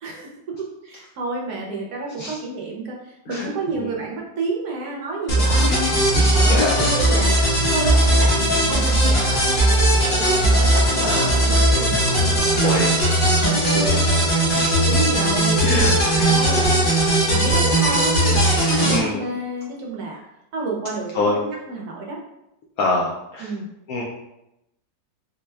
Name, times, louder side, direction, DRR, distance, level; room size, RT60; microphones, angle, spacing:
voice 1, 0.0-5.7 6.3-7.4 7.7-12.8 13.4-13.7 14.8-16.8 17.3-20.2 20.5-22.2 23.4-23.7, right 3 dB, 70° right, -2 dB, 1.0 m, -30 dB
voice 2, 3.3-3.9 5.7-7.0 8.0-8.2 11.0-11.4 12.6-13.0 13.6-15.0 15.4-16.2 18.8-19.2 21.1-21.4 22.8-23.5 23.9-24.0, left 2 dB, 70° left, -2 dB, 0.8 m, -26 dB
sound 1, 5.3-19.0, right 1 dB, 40° left, 0.7 m, -18 dB
4.2 x 2.2 x 3.3 m, 0.87 s
omnidirectional pair, 1.9 m